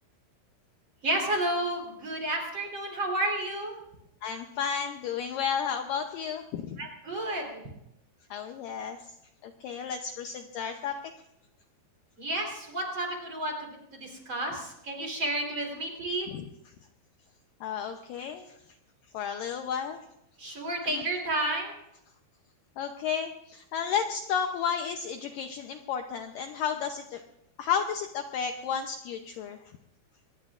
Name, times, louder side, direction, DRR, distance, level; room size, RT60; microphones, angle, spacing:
voice 1, 1.0-3.7 6.8-7.6 12.2-16.3 20.4-21.7, right 1 dB, 30° right, 1 dB, 4.2 m, -31 dB
voice 2, 4.2-6.8 8.3-9.1 9.4-11.1 16.3-16.5 17.6-18.6 19.1-20.0 20.5-20.6 20.8-21.0 22.8-27.2 27.6-29.6, left 7 dB, 75° left, 5 dB, 2.1 m, -32 dB
23.5 x 20.5 x 2.5 m, 0.83 s
omnidirectional pair, 4.6 m